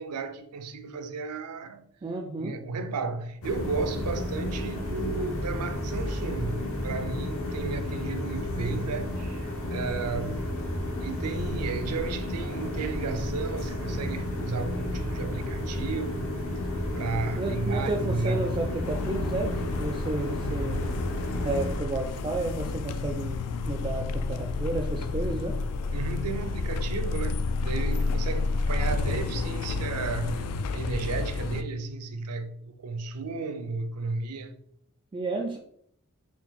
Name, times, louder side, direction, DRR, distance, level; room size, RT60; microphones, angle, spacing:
voice 1, 0.0-1.8 2.4-10.5 11.0-16.3 16.9-18.5 25.9-34.6, right 3 dB, 85° right, 0.5 m, -33 dB
voice 2, 2.0-2.5 17.4-20.9 21.4-25.6 35.1-35.6, right 2 dB, 20° right, 0.3 m, -32 dB
sound 1, 3.4-21.8, left 1 dB, 65° left, 0.7 m, -32 dB
sound 2, 18.8-31.6, left 3 dB, 80° left, 0.3 m, -30 dB
4.4 x 2.4 x 3.6 m
head